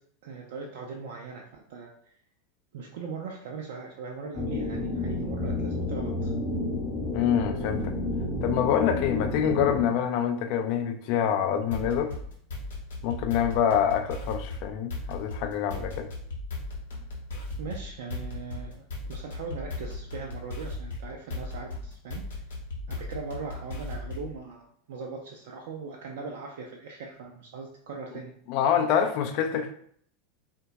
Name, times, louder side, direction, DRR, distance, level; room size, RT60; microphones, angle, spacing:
voice 1, 0.2-2.2 2.7-6.3 17.6-22.2 22.9-28.3, right 4 dB, 60° right, 1 dB, 0.4 m, -40 dB
sound 1, 4.4-9.9, left 2 dB, 5° left, 0.6 m, -30 dB
voice 2, 7.1-7.9 8.4-12.1 13.0-16.1 28.5-29.7, left 8 dB, 50° left, 7 dB, 0.4 m, -26 dB
sound 2, 11.7-24.4, left 2 dB, 70° left, 0.8 m, -37 dB
3.5 x 2.1 x 2.7 m, 0.63 s
figure-of-eight pair, 80°, 0 cm